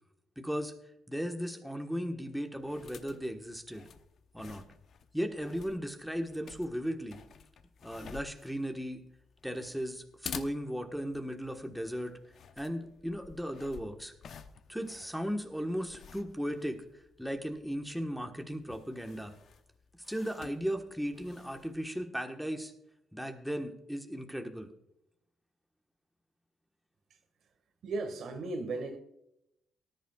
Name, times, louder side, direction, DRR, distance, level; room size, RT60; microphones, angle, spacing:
voice 1, 0.4-0.7 1.1-3.9 4.3-4.6 5.1-7.2 7.8-9.0 9.4-12.1 12.6-14.1 14.7-19.3 20.1-22.7 23.1-24.7, equal, ahead, 1.3 m, -36 dB
sound 1, 2.5-21.9, left 7 dB, 60° left, 0.8 m, -51 dB
voice 2, 27.8-29.0, right 3 dB, 65° right, 1.8 m, -36 dB
19.0 x 10.5 x 2.4 m
cardioid pair, 90°, 0 cm